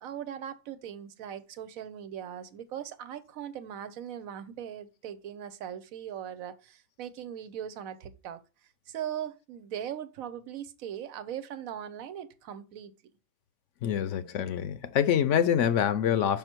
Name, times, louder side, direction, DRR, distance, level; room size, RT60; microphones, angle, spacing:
voice 1, 0.0-8.4 8.9-12.9, right 9 dB, 80° right, 1.1 m, -39 dB
voice 2, 13.8-16.4, left 9 dB, 70° left, 0.9 m, -26 dB
5.7 x 5.6 x 4.4 m
omnidirectional pair, 1.4 m